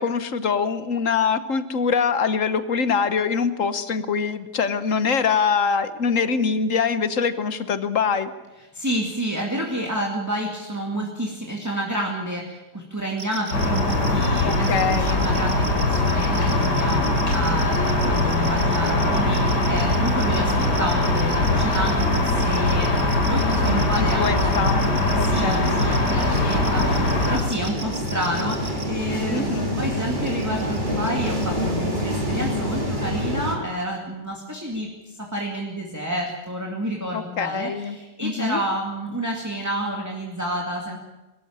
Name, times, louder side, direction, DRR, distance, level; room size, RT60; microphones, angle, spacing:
voice 1, 0.0-8.3 14.4-15.2 23.4-24.8 25.2-25.8 29.3-29.8 37.1-38.0 38.2-38.6, left 5 dB, 55° left, 12 dB, 1.4 m, -24 dB
voice 2, 8.7-24.6 25.2-41.0, right 1 dB, 10° right, 0 dB, 2.3 m, -29 dB
sound 1, 13.2-28.8 30.3-30.8 31.0-31.4, right 4 dB, 65° right, 2.7 m, -37 dB
sound 2, 13.5-27.4, left 2 dB, 75° left, 3.9 m, -21 dB
sound 3, 19.0-33.6, equal, 25° right, 3.4 m, -29 dB
22.5 x 13.5 x 8.8 m, 1.1 s
omnidirectional pair, 1.8 m